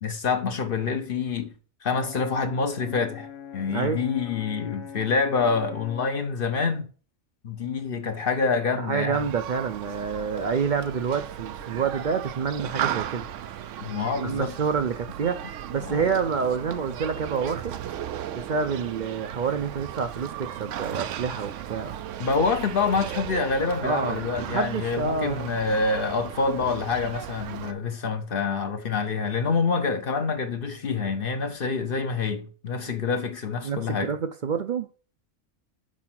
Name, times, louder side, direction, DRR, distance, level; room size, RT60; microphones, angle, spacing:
voice 1, 0.0-1.5 1.8-3.3 3.5-6.9 7.4-9.2 13.8-14.5 15.9-16.1 22.2-34.1, left 4 dB, 55° left, 0.9 m, -26 dB
Brass instrument, 2.0-6.2, left 8 dB, 75° left, 1.1 m, -42 dB
voice 2, 3.7-4.0 8.8-13.3 14.2-17.7 18.3-22.0 23.8-25.5 33.6-34.9, right 6 dB, 55° right, 0.6 m, -28 dB
Human group actions, 9.1-27.7, right 10 dB, 85° right, 0.9 m, -36 dB
6.2 x 4.8 x 5.8 m
omnidirectional pair, 1.3 m